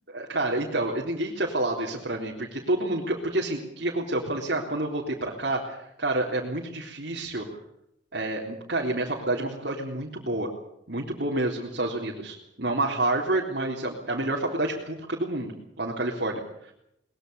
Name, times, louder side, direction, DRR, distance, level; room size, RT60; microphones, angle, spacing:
voice 1, 0.1-7.5 8.1-10.5 10.9-16.7, right 2 dB, 60° right, -2 dB, 3.7 m, -29 dB
23.0 x 21.0 x 7.0 m, 0.77 s
head